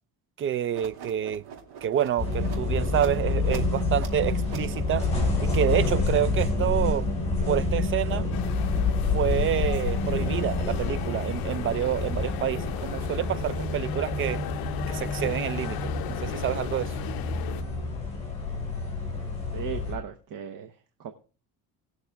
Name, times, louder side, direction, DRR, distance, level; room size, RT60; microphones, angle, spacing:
voice 1, 0.4-1.4 1.8-5.1 5.4-7.1 7.5-8.2 9.1-14.4 14.9-16.9, right 10 dB, 35° right, 0.4 m, -28 dB
sound 1, 0.7-6.0, right 8 dB, 75° right, 2.5 m, -44 dB
sound 2, 2.2-19.9, left 2 dB, 15° left, 6.3 m, -28 dB
sound 3, 8.3-17.6, left 12 dB, 65° left, 0.7 m, -34 dB
voice 2, 19.5-20.7 21.0-21.1, right 7 dB, 55° right, 1.1 m, -36 dB
19.5 x 6.6 x 3.5 m
cardioid pair, 140°, 39 cm